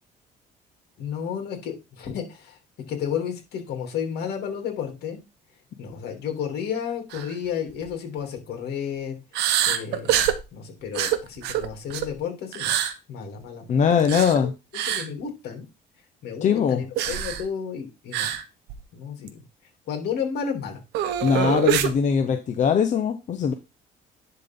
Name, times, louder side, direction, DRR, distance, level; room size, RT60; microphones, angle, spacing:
voice 1, 1.0-2.6 2.9-5.2 5.8-9.2 9.7-12.7 13.1-13.7 14.9-15.6 16.2-18.3 18.9-19.4 19.9-20.8, left 7 dB, 75° left, 4 dB, 3.0 m, -32 dB
sound 1, 7.1-7.3 7.7-7.9 9.3-10.4 10.9-12.1 12.5-12.9 14.0-14.4 14.7-15.1 17.0-17.5 18.1-18.4 18.7-18.8 19.3-19.4 20.9-21.9, right 10 dB, 85° right, 1.0 m, -25 dB
voice 2, 13.7-14.5 16.4-16.8 21.2-23.5, left 7 dB, 45° left, 6 dB, 0.9 m, -21 dB
10.5 x 3.9 x 3.7 m, 0.26 s
cardioid pair, 110°, 17 cm